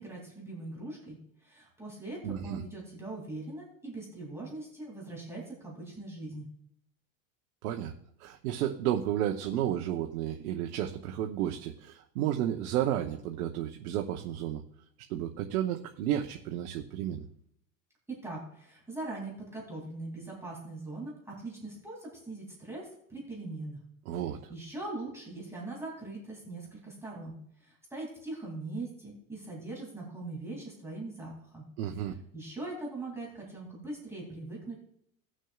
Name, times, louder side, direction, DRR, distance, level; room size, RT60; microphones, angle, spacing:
voice 1, 0.0-6.5 18.1-23.8 24.5-31.6 32.0-32.1 32.3-34.8, right 2 dB, 5° right, -4 dB, 2.6 m, -41 dB
voice 2, 2.2-2.6 7.6-7.9 8.2-14.6 15.1-17.2 24.1-24.4 31.8-32.1, right 11 dB, 85° right, 3 dB, 0.9 m, -32 dB
18.5 x 6.3 x 2.4 m, 0.70 s
supercardioid pair, 140°, 43 cm